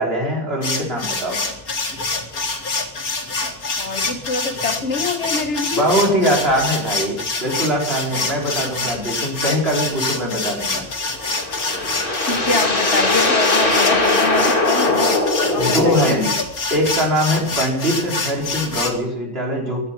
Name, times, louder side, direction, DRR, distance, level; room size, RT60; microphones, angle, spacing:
voice 1, 0.0-1.4 5.7-10.9 15.6-16.3 16.7-19.9, equal, 45° right, -1 dB, 4.9 m, -21 dB
sound 1, 0.6-18.9, left 3 dB, 90° left, 2.7 m, -26 dB
voice 2, 3.8-5.9 12.2-16.4, left 4 dB, 55° left, 9 dB, 1.4 m, -25 dB
sound 2, 11.1-16.3, left 2 dB, 40° left, 2.7 m, -20 dB
17.5 x 12.5 x 5.9 m, 0.74 s
omnidirectional pair, 1.5 m